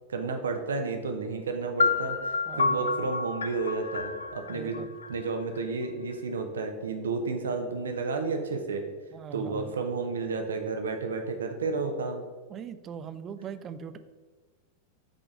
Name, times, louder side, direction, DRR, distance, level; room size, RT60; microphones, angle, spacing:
voice 1, 0.1-4.8 5.1-8.8 9.3-12.2, right 4 dB, 70° right, 5 dB, 0.9 m, -31 dB
sound 1, 1.8-5.6, left 4 dB, 70° left, 0.4 m, -29 dB
voice 2, 2.5-3.1 4.5-4.9 9.1-9.8 12.5-14.0, right 7 dB, 30° right, 12 dB, 0.4 m, -40 dB
7.6 x 3.8 x 4.7 m, 1.4 s
figure-of-eight pair, 90°, 0 cm